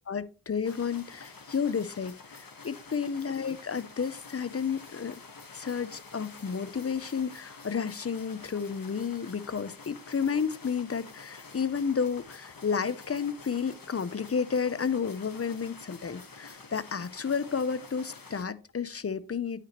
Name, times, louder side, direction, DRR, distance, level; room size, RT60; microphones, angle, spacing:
voice 1, 0.1-5.2 5.5-19.6, left 6 dB, 35° left, 0.6 m, -31 dB
sound 1, 0.6-18.4, left 4 dB, 55° left, 1.3 m, -49 dB
9.4 x 5.9 x 3.0 m
wide cardioid pair, 55°, 42 cm